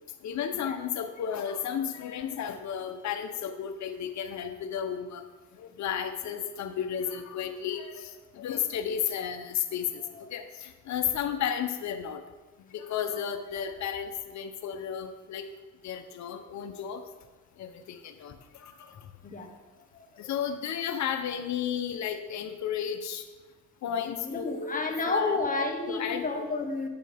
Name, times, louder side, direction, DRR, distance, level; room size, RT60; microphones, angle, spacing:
voice 1, 0.2-5.2 5.6-10.0 10.3-12.2 12.7-15.4 15.8-17.0 17.6-18.3 18.6-18.9 20.2-23.2 23.8-25.4 25.9-26.3, left 8 dB, 65° left, 6 dB, 0.9 m, -33 dB
voice 2, 19.2-19.5 19.9-20.3 24.2-26.9, left 3 dB, 25° left, 3 dB, 1.4 m, -31 dB
8.9 x 8.6 x 3.5 m, 1.2 s
cardioid pair, 90°, 30 cm